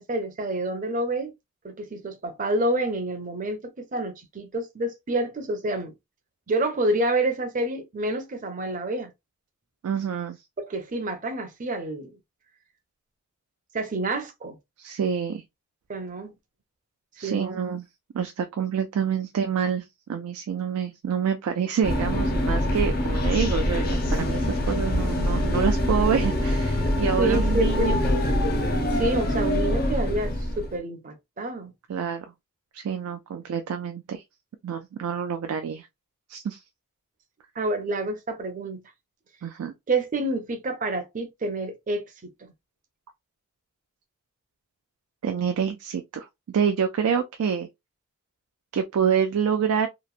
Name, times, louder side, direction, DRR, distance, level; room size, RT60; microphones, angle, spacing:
voice 1, 0.0-1.3 1.6-5.9 6.5-9.1 10.6-12.2 13.7-14.6 15.9-16.3 17.2-17.6 27.2-28.1 28.9-31.7 37.6-38.8 39.9-42.3, right 2 dB, 35° right, 0.5 m, -28 dB
voice 2, 9.8-10.4 14.8-15.4 17.2-17.8 18.1-28.0 31.9-32.3 32.7-34.2 34.6-35.9 36.3-36.6 39.4-39.7 45.2-47.7 48.7-49.9, right 7 dB, 90° right, 0.3 m, -27 dB
sound 1, 21.8-30.8, left 1 dB, 45° left, 0.6 m, -24 dB
2.9 x 2.1 x 2.4 m
head